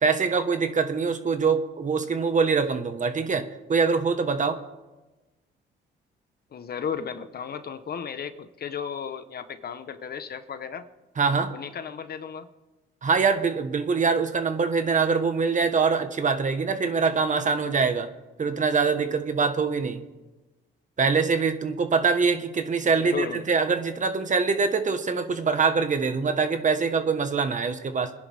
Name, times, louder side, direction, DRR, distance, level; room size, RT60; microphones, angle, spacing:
voice 1, 0.0-4.6 11.2-11.5 13.0-18.1 18.4-20.0 21.0-28.1, right 5 dB, 40° right, 8 dB, 1.5 m, -24 dB
voice 2, 6.5-10.9 11.5-12.5 22.8-23.4, left 7 dB, 50° left, 10 dB, 1.2 m, -34 dB
26.5 x 10.5 x 3.6 m, 1.1 s
cardioid pair, 90°, 20 cm